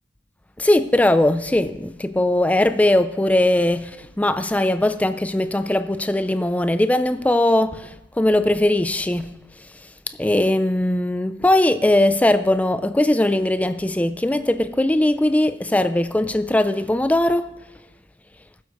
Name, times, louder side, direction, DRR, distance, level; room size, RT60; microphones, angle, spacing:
voice 1, 0.6-9.3 10.2-17.5, left 1 dB, 10° left, 0.3 m, -20 dB
19.0 x 7.9 x 3.0 m
head